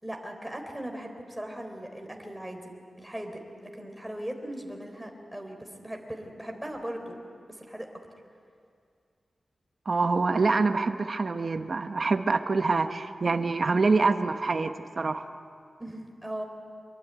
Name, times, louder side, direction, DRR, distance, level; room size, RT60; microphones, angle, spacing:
voice 1, 0.0-7.2 7.5-7.9 15.8-16.4, right 1 dB, 5° right, 3 dB, 3.7 m, -39 dB
voice 2, 9.9-15.2, right 3 dB, 45° right, 7 dB, 1.1 m, -25 dB
26.0 x 22.5 x 9.2 m, 2.3 s
wide cardioid pair, 130°, 0 cm